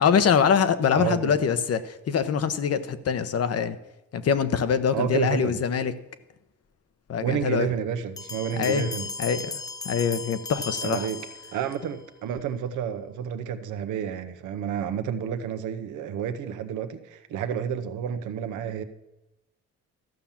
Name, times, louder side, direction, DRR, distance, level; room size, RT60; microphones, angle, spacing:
voice 1, 0.0-3.8 4.1-5.9 7.1-7.7 8.6-8.9 9.2-9.6 9.8-11.1, left 7 dB, 55° left, 0.9 m, -24 dB
voice 2, 0.9-1.3 4.9-5.6 7.2-9.0 10.8-11.2 11.5-18.8, right 8 dB, 85° right, 1.0 m, -30 dB
Bell, 8.2-11.9, left 3 dB, 15° left, 0.4 m, -36 dB
13.5 x 5.8 x 7.2 m
cardioid pair, 90°, 30 cm